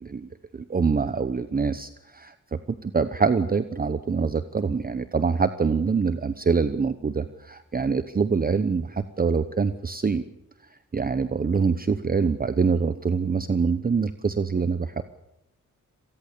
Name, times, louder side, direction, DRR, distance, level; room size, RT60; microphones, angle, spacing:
voice 1, 0.0-10.2 10.9-15.0, right 5 dB, 30° right, 11 dB, 0.9 m, -25 dB
26.5 x 19.0 x 6.8 m, 0.91 s
wide cardioid pair, 115°, 31 cm